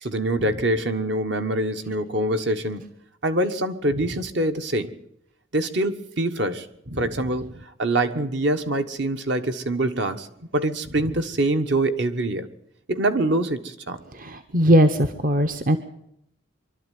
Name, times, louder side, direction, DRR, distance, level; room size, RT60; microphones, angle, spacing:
voice 1, 0.0-2.9 3.2-4.9 5.5-6.7 7.0-10.3 10.5-12.5 12.9-14.0, right 1 dB, 60° right, 8 dB, 1.3 m, -24 dB
voice 2, 14.2-15.8, equal, 45° right, 9 dB, 0.8 m, -19 dB
24.5 x 12.0 x 9.3 m, 0.79 s
head